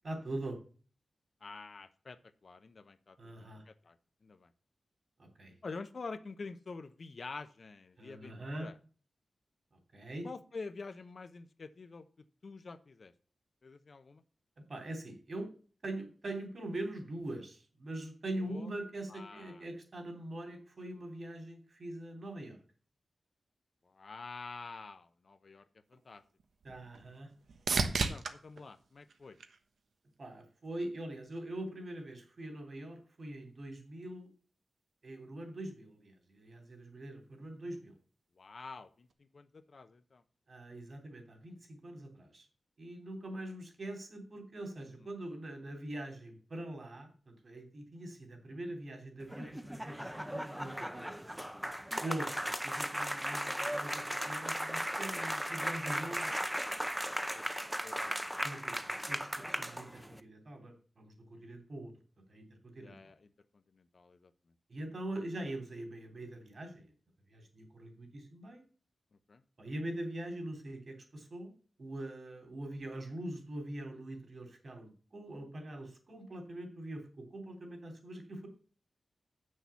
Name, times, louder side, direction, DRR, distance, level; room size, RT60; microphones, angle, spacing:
voice 1, 0.0-0.6 3.2-3.6 5.2-5.5 8.0-8.7 9.9-10.3 14.6-15.5 15.8-22.6 26.6-27.3 30.2-34.3 35.0-37.9 40.5-42.5 42.8-51.4 52.0-56.4 58.4-61.9 62.3-63.1 64.7-66.9 67.3-68.6 69.6-71.5 71.8-78.5, right 1 dB, 55° right, 4 dB, 3.3 m, -43 dB
voice 2, 1.4-4.0 4.2-4.5 5.6-8.7 10.2-12.0 12.4-13.1 13.6-14.2 18.4-18.7 19.1-19.6 23.9-25.6 25.9-26.2 27.9-29.4 38.4-39.1 39.3-40.2 57.3-57.5 57.8-58.4 62.8-63.2 63.7-64.3 69.3-69.4, left 4 dB, 55° left, 10 dB, 0.8 m, -47 dB
sound 1, 25.9-30.2 30.7-31.3 39.1-39.2, right 4 dB, 85° right, 1.0 m, -37 dB
sound 2, 49.2-60.2, equal, 5° right, 0.7 m, -37 dB
7.7 x 6.5 x 7.0 m, 0.40 s
wide cardioid pair, 100°, 0 cm